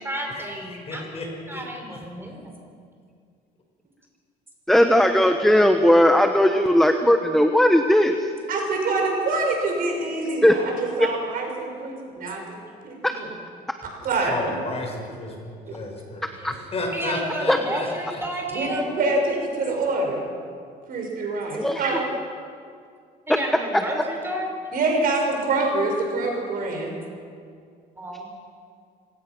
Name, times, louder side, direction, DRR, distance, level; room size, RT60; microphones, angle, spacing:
voice 1, 0.0-2.5 14.9-15.4 15.8-15.9 16.3-16.5 16.9-18.9 23.3-24.5 28.0-28.3, right 1 dB, 15° right, 1 dB, 5.5 m, -32 dB
voice 2, 0.9-1.6 1.9-2.0 14.2-15.3 15.7-18.2, left 2 dB, 35° left, 1 dB, 5.5 m, -32 dB
voice 3, 4.7-8.2 10.4-10.6 13.0-13.1 16.4-16.5 17.5-17.6 21.5-21.8, equal, ahead, 6 dB, 1.1 m, -17 dB
voice 4, 8.5-12.6 12.8-13.3 14.0-14.5 15.7-15.8 18.5-20.2 20.9-22.1 24.7-26.9, right 2 dB, 60° right, 1 dB, 6.0 m, -25 dB
26.0 x 17.0 x 6.1 m, 2.2 s
cardioid pair, 110°, 17 cm